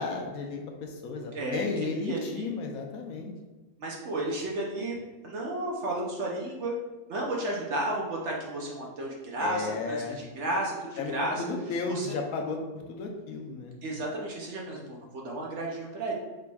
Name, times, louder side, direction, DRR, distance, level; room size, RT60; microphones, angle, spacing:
voice 1, 0.0-3.3 9.4-10.2 11.0-11.1 11.4-12.6 12.9-13.7, left 4 dB, 85° left, 1 dB, 1.2 m, -33 dB
voice 2, 1.3-2.5 3.8-5.0 5.2-6.7 7.1-11.4 11.9-12.2 13.8-16.1, right 1 dB, 60° right, -2 dB, 0.9 m, -33 dB
5.0 x 3.4 x 2.3 m, 1.2 s
omnidirectional pair, 1.5 m